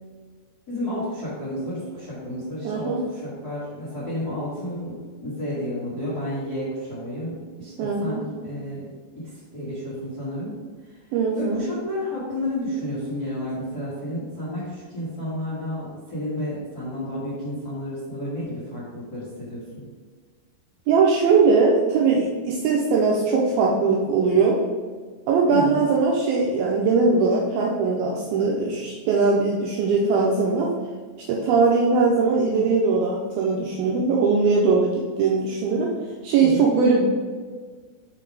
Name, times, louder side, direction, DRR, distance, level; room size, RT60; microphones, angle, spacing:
voice 1, 0.7-10.6 10.8-11.0 11.3-19.9 25.5-25.8 36.4-36.7, left 1 dB, 85° left, -10 dB, 0.8 m, -31 dB
voice 2, 2.6-3.0 7.8-8.2 11.1-11.7 20.9-24.6 25.3-30.7 31.3-35.9 36.2-37.1, right 4 dB, 90° right, -2 dB, 2.1 m, -20 dB
6.0 x 3.9 x 4.8 m, 1.5 s
omnidirectional pair, 4.9 m